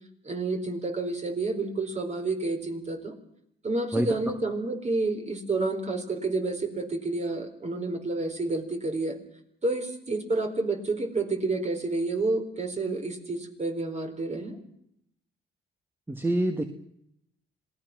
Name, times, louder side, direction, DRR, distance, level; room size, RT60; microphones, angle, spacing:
voice 1, 0.2-3.1 3.6-9.2 9.6-14.6, right 3 dB, 35° right, 5 dB, 4.6 m, -29 dB
voice 2, 3.9-4.3 16.1-16.6, right 1 dB, 10° right, 6 dB, 1.7 m, -27 dB
26.5 x 18.5 x 6.2 m, 0.75 s
cardioid pair, 90°, 20 cm